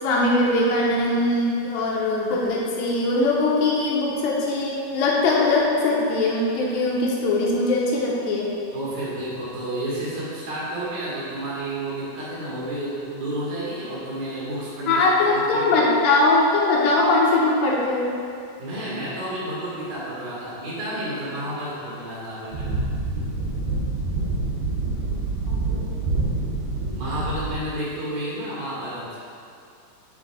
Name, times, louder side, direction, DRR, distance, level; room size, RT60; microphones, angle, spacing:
voice 1, 0.0-8.5 14.9-18.2 25.5-26.0, left 2 dB, 85° left, -4 dB, 3.2 m, -21 dB
voice 2, 8.7-15.0 15.3-15.7 18.6-22.7 23.1-23.3 26.9-29.1, right 1 dB, 65° right, -8 dB, 3.2 m, -31 dB
sound 1, 22.5-27.6, right 3 dB, 85° right, 3.2 m, -26 dB
10.0 x 6.8 x 2.3 m, 2.4 s
omnidirectional pair, 4.7 m